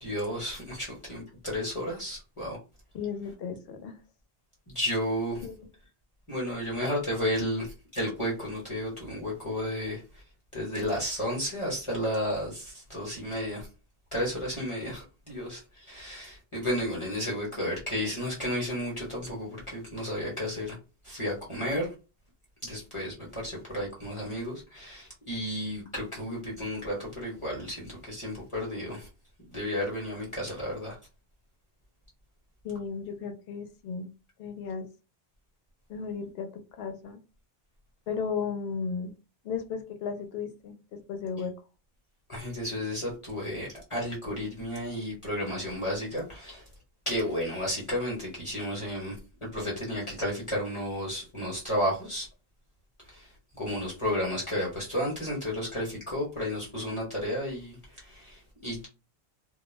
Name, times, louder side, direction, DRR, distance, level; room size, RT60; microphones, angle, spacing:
voice 1, 0.0-2.6 4.7-5.4 6.3-10.2 10.5-13.7 14.1-20.8 21.0-21.9 22.6-29.1 29.5-31.0 42.3-46.6 47.1-49.2 49.4-52.3 53.1-58.9, equal, 30° left, 0.9 m, -32 dB
voice 2, 2.9-4.0 5.4-5.6 32.6-34.1 34.4-34.9 35.9-37.2 38.1-39.1 39.4-41.5, left 6 dB, 75° left, 0.8 m, -35 dB
2.2 x 2.1 x 3.1 m
omnidirectional pair, 1.0 m